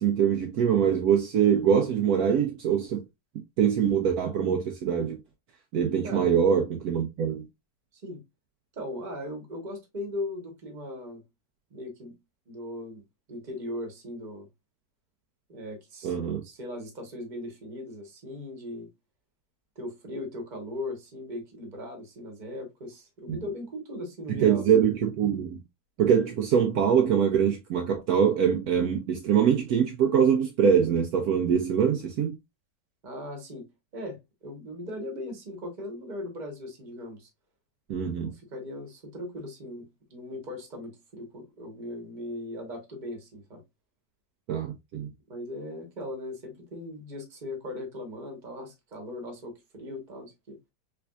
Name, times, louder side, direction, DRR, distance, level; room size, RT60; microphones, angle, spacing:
voice 1, 0.0-3.0 3.6-5.2 5.7-7.5 16.0-16.4 23.3-23.4 24.4-25.6 26.0-32.3 37.9-38.3 44.5-45.1, right 8 dB, 70° right, 1.0 m, -23 dB
voice 2, 8.7-11.2 11.7-12.1 12.5-13.0 13.3-14.5 15.5-18.9 19.7-24.6 33.0-33.7 33.9-37.3 38.2-43.6 45.3-50.6, left 1 dB, 30° right, 1.1 m, -38 dB
3.4 x 3.3 x 2.3 m
omnidirectional pair, 1.8 m